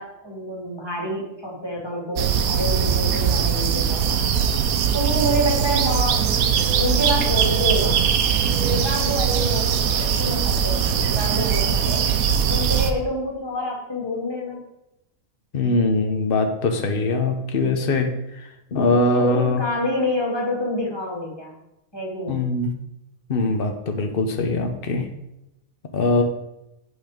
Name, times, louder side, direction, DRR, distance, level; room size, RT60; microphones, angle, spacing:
voice 1, 0.0-4.2 4.9-6.4 6.8-7.9 8.7-12.1 12.5-14.6 19.1-21.5 21.9-22.5, equal, 15° left, -3 dB, 2.8 m, -27 dB
sound 1, 2.2-12.9, right 7 dB, 85° right, 1.2 m, -21 dB
voice 2, 15.5-18.1 18.7-19.6 22.3-22.7 23.3-25.1 25.9-26.2, left 3 dB, 45° left, 5 dB, 1.2 m, -21 dB
8.6 x 6.5 x 5.2 m, 0.88 s
omnidirectional pair, 1.5 m